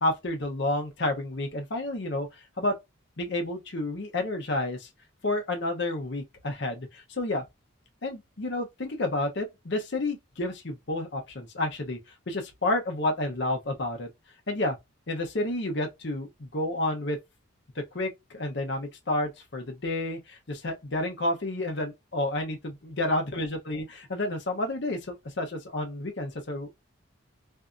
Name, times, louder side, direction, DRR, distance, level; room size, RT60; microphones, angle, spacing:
voice 1, 0.0-2.8 3.2-4.9 5.2-7.4 8.0-12.0 12.3-14.1 14.5-14.8 15.1-17.2 17.8-26.7, left 2 dB, 55° left, 0.8 m, -30 dB
2.7 x 2.5 x 2.2 m
head